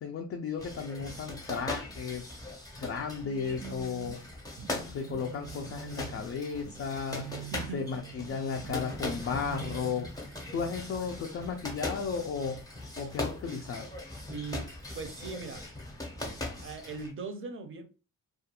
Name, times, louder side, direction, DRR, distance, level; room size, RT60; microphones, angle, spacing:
voice 1, 0.0-2.3 2.8-4.2 4.7-7.3 7.7-10.1 10.5-12.6 13.0-13.9, left 6 dB, 45° left, 0.4 m, -34 dB
sound 1, 0.6-17.1, left 1 dB, 10° left, 0.7 m, -40 dB
sound 2, 3.2-10.1, right 8 dB, 90° right, 0.7 m, -46 dB
voice 2, 7.5-7.8 10.3-10.5 14.3-14.7 14.9-15.6 16.6-17.9, right 4 dB, 40° right, 0.6 m, -40 dB
2.4 x 2.3 x 2.8 m
cardioid pair, 115°, 32 cm